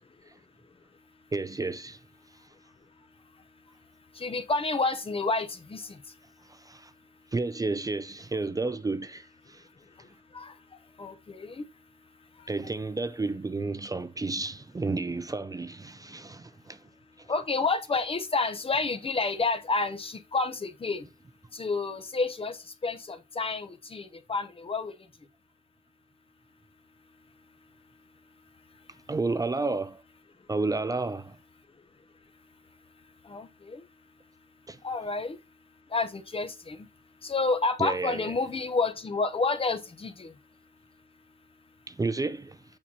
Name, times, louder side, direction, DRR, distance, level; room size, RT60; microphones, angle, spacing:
voice 1, 1.3-2.0 6.4-6.9 7.3-9.7 12.5-16.9 17.2-17.3 29.1-30.0 30.5-31.4 34.7-34.8 37.8-38.3 41.9-42.6, right 3 dB, 25° right, 0.4 m, -31 dB
voice 2, 4.2-6.0 10.3-10.5 11.0-11.6 17.3-21.0 21.5-22.6 22.8-24.9 33.3-33.8 34.8-35.4 35.9-36.8 37.2-40.3, left 3 dB, 40° left, 1.0 m, -29 dB
8.8 x 5.7 x 2.9 m
wide cardioid pair, 155°, 15 cm